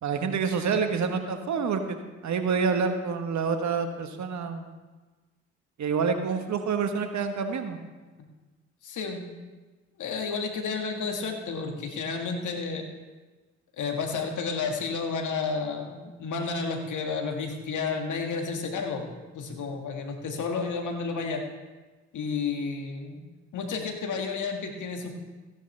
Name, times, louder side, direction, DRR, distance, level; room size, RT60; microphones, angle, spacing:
voice 1, 0.0-4.8 5.8-7.8, right 5 dB, 55° right, 7 dB, 1.3 m, -28 dB
voice 2, 8.8-9.2 10.0-12.9 13.8-21.4 22.1-23.2 23.5-25.2, left 4 dB, 65° left, 3 dB, 1.8 m, -31 dB
15.0 x 10.0 x 3.3 m, 1.3 s
hypercardioid pair, 50°, 33 cm